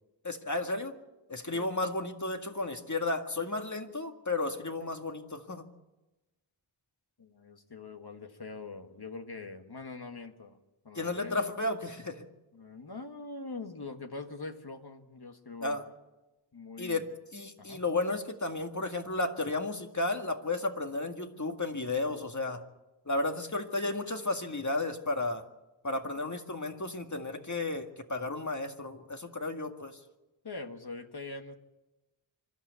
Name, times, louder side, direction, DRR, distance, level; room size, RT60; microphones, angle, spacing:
voice 1, 0.2-1.0 1.3-5.7 10.9-12.3 15.6-15.8 16.8-17.1 17.3-22.6 23.1-25.4 25.8-30.0, left 2 dB, 35° left, 5 dB, 2.0 m, -33 dB
voice 2, 7.2-10.6 10.8-11.4 12.5-15.8 16.5-17.1 17.6-17.8 30.4-31.6, left 3 dB, 50° left, 5 dB, 1.6 m, -43 dB
25.5 x 12.5 x 8.3 m, 1.0 s
wide cardioid pair, 50°, 48 cm